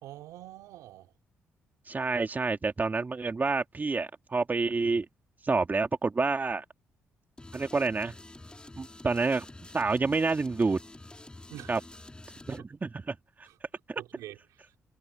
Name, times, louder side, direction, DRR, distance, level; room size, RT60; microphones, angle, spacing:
voice 1, 0.0-1.1 11.5-11.8 13.4-13.6 14.0-14.7, right 14 dB, 85° right, 4.0 m, -46 dB
voice 2, 1.9-5.1 5.4-6.6 7.5-8.1 8.8-9.5 9.7-10.8 11.7-11.8 12.5-13.5 13.9-14.0, right 4 dB, 35° right, 2.4 m, -28 dB
sound 1, 7.4-12.6, left 2 dB, 15° left, 3.5 m, -48 dB
supercardioid pair, 55°, 5 cm